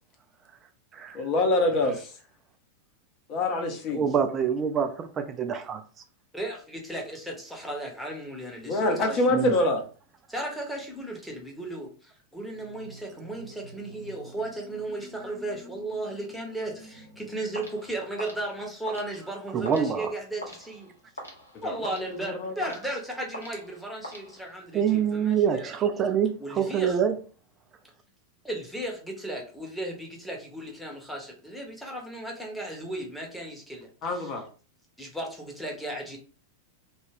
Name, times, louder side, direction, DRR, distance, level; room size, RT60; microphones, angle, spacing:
voice 1, 1.1-2.1 3.3-4.1 8.6-9.8 21.5-21.7 22.0-22.7 34.0-34.5, left 2 dB, 40° left, 0.7 m, -26 dB
voice 2, 3.9-5.1 5.4-5.8 9.3-9.5 19.5-20.1 24.7-27.2, right 8 dB, 25° right, 0.4 m, -25 dB
voice 3, 6.3-9.5 10.3-20.9 21.6-25.7 26.4-27.0 28.4-34.3 35.0-36.2, right 1 dB, ahead, 0.8 m, -35 dB
sound 1, 12.4-18.6, right 2 dB, 75° right, 1.0 m, -49 dB
sound 2, 17.5-24.8, equal, 80° left, 0.7 m, -45 dB
2.3 x 2.2 x 3.3 m
figure-of-eight pair, 90°, 0 cm